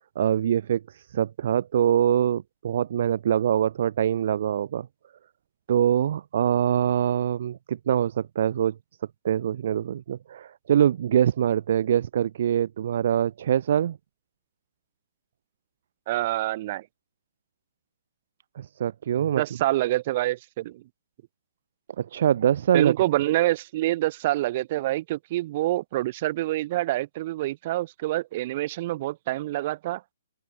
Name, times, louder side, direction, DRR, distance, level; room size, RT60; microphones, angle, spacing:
voice 1, 0.2-4.9 5.7-8.7 9.2-14.0 18.6-19.4 22.0-22.9, right 10 dB, 50° right, 4.2 m, -24 dB
voice 2, 16.1-16.8 19.4-20.8 22.7-30.0, right 16 dB, 35° right, 6.1 m, -26 dB
open air
hypercardioid pair, 165°, 0 cm